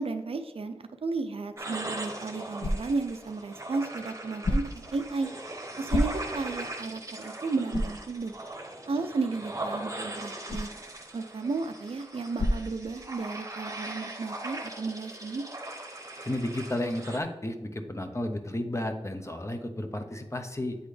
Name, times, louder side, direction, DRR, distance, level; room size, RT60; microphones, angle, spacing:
voice 1, 0.0-5.3 5.8-8.3 8.9-10.7 11.1-15.5, right 3 dB, 80° right, 8 dB, 0.5 m, -33 dB
sound 1, 1.6-17.2, right 2 dB, 30° right, 0.9 m, -40 dB
sound 2, 1.8-13.5, left 1 dB, 55° left, 0.5 m, -36 dB
voice 2, 16.2-20.8, left 1 dB, 30° left, 5 dB, 0.8 m, -32 dB
8.4 x 4.0 x 3.3 m, 1.1 s
wide cardioid pair, 60°, 10 cm